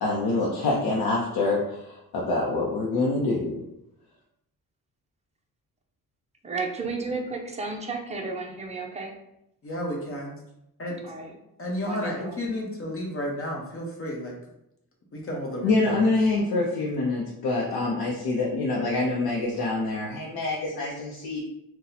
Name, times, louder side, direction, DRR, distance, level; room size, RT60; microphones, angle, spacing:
voice 1, 0.0-3.6 15.6-21.4, left 2 dB, 85° left, -4 dB, 0.7 m, -26 dB
voice 2, 6.4-9.1 11.0-11.3 11.9-12.4, right 3 dB, 20° right, 2 dB, 0.5 m, -33 dB
voice 3, 9.6-10.3 10.8-10.9 11.6-14.3 15.1-16.0, left 1 dB, 40° left, -1 dB, 0.9 m, -32 dB
2.7 x 2.2 x 4.0 m, 0.82 s
cardioid pair, 125°, 36 cm